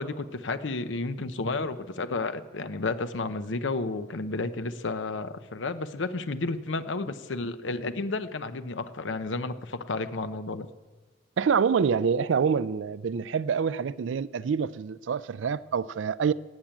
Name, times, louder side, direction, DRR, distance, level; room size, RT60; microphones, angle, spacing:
voice 1, 0.0-10.7, left 3 dB, 75° left, 0.8 m, -32 dB
voice 2, 11.4-16.3, right 6 dB, 80° right, 0.4 m, -26 dB
17.0 x 7.4 x 9.0 m
head